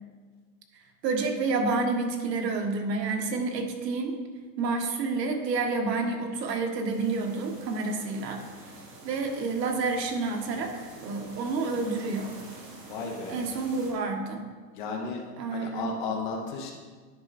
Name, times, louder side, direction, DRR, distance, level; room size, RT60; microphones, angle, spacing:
voice 1, 0.7-4.2 4.6-8.4 9.0-12.4 13.3-14.5 15.4-15.9, right 3 dB, 85° right, 3 dB, 1.6 m, -29 dB
sound 1, 6.9-13.9, right 2 dB, 25° right, 1.3 m, -47 dB
voice 2, 12.9-13.4 14.7-15.2 15.5-16.7, left 4 dB, 30° left, 2 dB, 0.8 m, -33 dB
10.5 x 5.4 x 4.2 m, 1.5 s
supercardioid pair, 175°, 48 cm